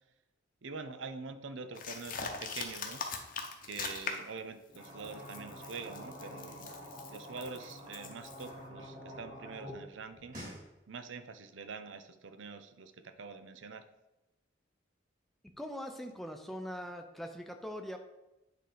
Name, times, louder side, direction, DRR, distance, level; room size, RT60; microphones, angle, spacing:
voice 1, 0.6-3.0 3.6-6.7 7.1-10.4 10.9-13.9, right 4 dB, 70° right, 9 dB, 0.6 m, -45 dB
sound 1, 1.7-4.4 4.7-8.5, left 5 dB, 45° left, 0.9 m, -41 dB
sound 2, 4.7-9.8 10.1-10.6, equal, 40° right, 3.0 m, -47 dB
voice 2, 15.6-18.0, equal, ahead, 4 dB, 0.6 m, -41 dB
9.2 x 3.8 x 5.1 m, 0.98 s
head